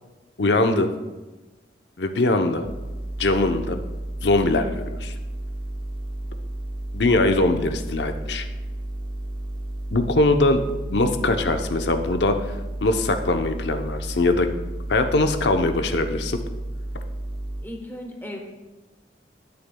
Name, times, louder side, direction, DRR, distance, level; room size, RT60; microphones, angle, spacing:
voice 1, 0.4-0.9 2.0-2.7 3.2-3.8 4.2-5.1 6.9-8.4 9.9-10.6 10.9-12.5 12.8-14.5 14.9-16.4, left 2 dB, 75° left, 6 dB, 0.8 m, -21 dB
sound 1, 2.6-17.6, right 1 dB, 30° right, 0.7 m, -32 dB
voice 2, 17.6-18.4, left 1 dB, 10° left, 1 dB, 1.1 m, -37 dB
19.5 x 6.6 x 2.3 m, 1.1 s
head